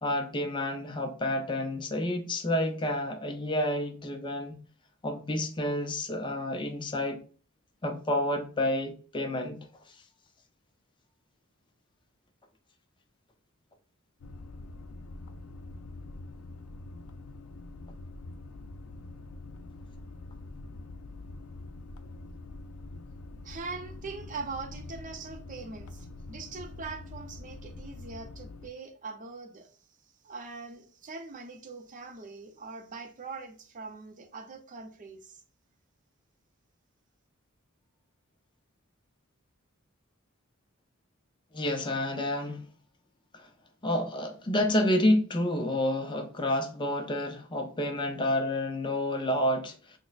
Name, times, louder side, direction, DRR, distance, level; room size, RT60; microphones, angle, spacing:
voice 1, 0.0-4.6 5.0-7.2 7.8-10.0 41.5-42.7 43.3-43.5 43.8-50.0, left 1 dB, 25° left, 0.5 m, -29 dB
sound 1, 14.2-28.7, left 2 dB, 90° left, 0.4 m, -45 dB
voice 2, 23.4-29.7 30.2-35.4, right 4 dB, 40° right, 0.6 m, -42 dB
6.2 x 2.1 x 2.3 m
head